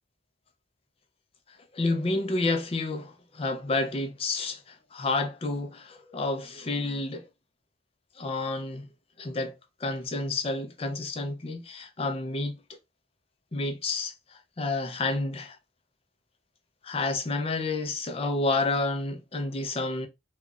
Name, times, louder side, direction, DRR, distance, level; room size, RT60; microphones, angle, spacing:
voice 1, 1.7-7.3 8.2-8.9 9.2-12.6 13.5-15.6 16.8-20.1, left 3 dB, 30° left, 0.5 m, -30 dB
3.7 x 2.3 x 2.3 m
head